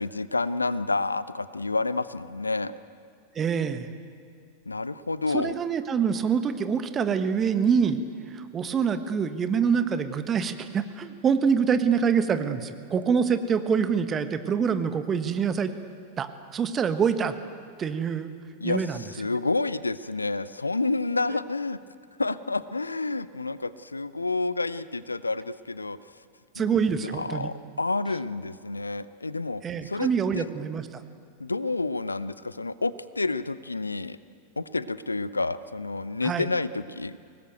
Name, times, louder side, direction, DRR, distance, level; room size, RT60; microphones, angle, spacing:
voice 1, 0.0-2.7 4.7-5.6 18.6-21.8 22.2-26.0 26.6-30.1 30.3-30.5 31.4-34.2 34.6-37.2, left 3 dB, 80° left, 16 dB, 0.6 m, -29 dB
voice 2, 3.3-3.9 5.3-8.0 8.3-15.7 16.2-17.3 17.8-18.3 18.6-19.0 26.5-27.5 29.6-30.9 36.2-36.5, right 6 dB, 25° right, 10 dB, 1.4 m, -25 dB
23.5 x 19.0 x 9.2 m, 2.3 s
figure-of-eight pair, 90°, 0 cm